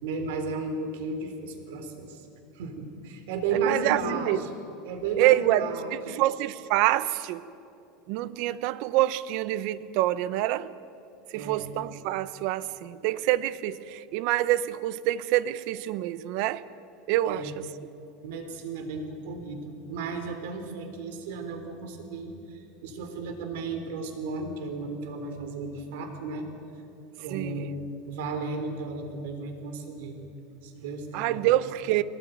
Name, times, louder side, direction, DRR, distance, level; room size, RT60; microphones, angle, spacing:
voice 1, 0.0-2.3 2.5-4.5 4.8-6.0 11.3-11.8 17.3-17.5 18.2-26.5 27.2-27.8 28.1-30.2 30.6-31.4, right 4 dB, 70° right, 3.5 m, -34 dB
voice 2, 3.6-4.4 5.2-7.5 8.1-10.7 11.3-16.6 17.1-17.5 27.3-27.7 31.1-32.0, right 15 dB, 50° right, 0.7 m, -26 dB
21.5 x 18.5 x 9.2 m
supercardioid pair, 175°, 0 cm